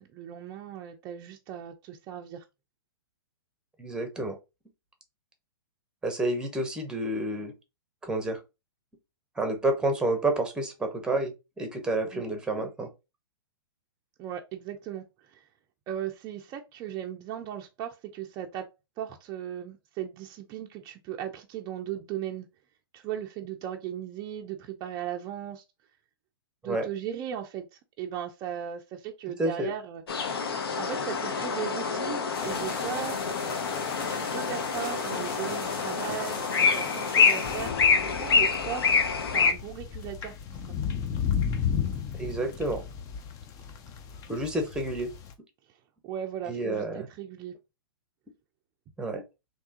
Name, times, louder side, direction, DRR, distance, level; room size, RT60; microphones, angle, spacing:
voice 1, 0.0-2.4 12.1-12.2 14.2-15.5 15.9-22.5 22.9-25.6 26.6-30.3 30.8-33.2 34.1-37.8 38.0-38.9 39.3-40.3 45.7-45.8 46.0-47.5, right 10 dB, 30° right, 0.4 m, -37 dB
voice 2, 3.8-4.3 6.0-7.5 8.0-8.4 9.4-12.9 26.6-26.9 29.4-29.7 42.2-42.8 44.3-45.1 46.5-47.1 49.0-49.2, right 2 dB, 5° right, 0.9 m, -29 dB
sound 1, 30.1-39.5, left 5 dB, 70° left, 0.8 m, -27 dB
sound 2, 32.3-37.7, left 4 dB, 55° left, 1.4 m, -38 dB
sound 3, 37.4-45.3, left 7 dB, 25° left, 0.5 m, -34 dB
3.5 x 2.9 x 2.8 m
hypercardioid pair, 120°, 13 cm